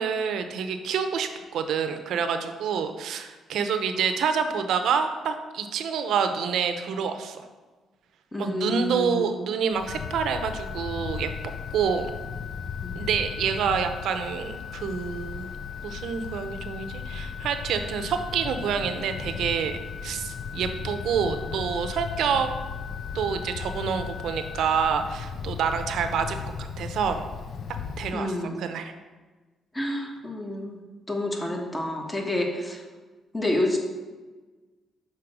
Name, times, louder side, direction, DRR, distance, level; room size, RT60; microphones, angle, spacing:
voice 1, 0.0-7.5 8.4-12.1 13.0-15.5 15.8-22.5 23.1-27.2 28.0-28.3 28.6-28.9, right 6 dB, 75° right, 8 dB, 0.6 m, -27 dB
voice 2, 8.3-9.3 12.8-12.9 28.1-28.7 29.7-32.8 33.3-33.8, left 1 dB, 15° left, 2 dB, 1.1 m, -29 dB
Wind, 9.7-28.1, left 6 dB, 60° left, 0.4 m, -37 dB
sound 1, 9.9-24.8, left 7 dB, 10° right, 0.5 m, -42 dB
6.0 x 4.4 x 5.0 m, 1.3 s
cardioid pair, 90°, 0 cm